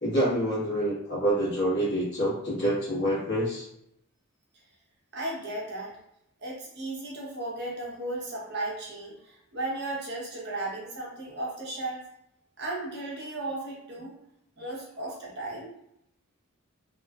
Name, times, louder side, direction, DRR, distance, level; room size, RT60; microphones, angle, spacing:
voice 1, 0.0-3.6, right 1 dB, 55° left, -8 dB, 1.3 m, -27 dB
voice 2, 5.1-5.9 6.4-12.0 12.6-14.1 14.6-15.7, right 2 dB, 50° right, -4 dB, 0.8 m, -35 dB
2.8 x 2.3 x 2.3 m, 0.76 s
head